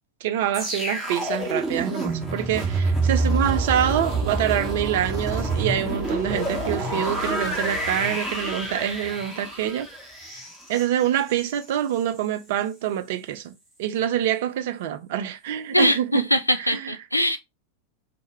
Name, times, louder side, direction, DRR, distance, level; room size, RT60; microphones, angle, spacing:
voice 1, 0.2-9.9 10.3-10.4 10.7-16.3 16.6-16.9, right 11 dB, 50° right, 0.4 m, -26 dB
sound 1, 0.5-11.6 12.0-12.2, right 2 dB, 5° right, 0.9 m, -28 dB
Singing / Musical instrument, 3.1-8.2, right 2 dB, 80° right, 0.8 m, -35 dB
voice 2, 15.7-17.4, left 1 dB, 90° left, 0.4 m, -22 dB
2.1 x 2.1 x 3.3 m
figure-of-eight pair, 90°, 0 cm